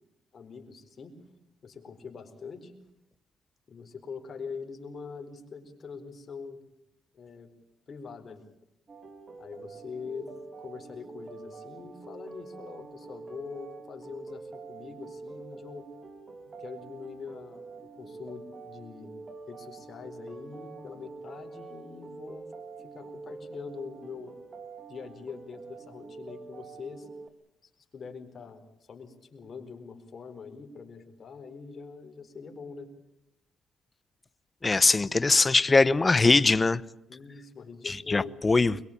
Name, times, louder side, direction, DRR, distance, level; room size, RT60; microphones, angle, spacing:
voice 1, 0.3-1.2 1.6-2.7 3.7-6.6 7.1-7.5 7.9-8.5 9.4-15.9 16.5-19.2 19.5-22.5 22.8-24.4 24.9-27.1 27.6-32.9 37.1-38.4, left 5 dB, 45° left, 4.4 m, -43 dB
sound 1, 8.9-27.3, right 3 dB, 35° right, 2.5 m, -45 dB
voice 2, 34.6-36.8 37.9-38.8, left 3 dB, 25° left, 0.8 m, -22 dB
22.5 x 22.5 x 8.7 m
cardioid pair, 90°, 0 cm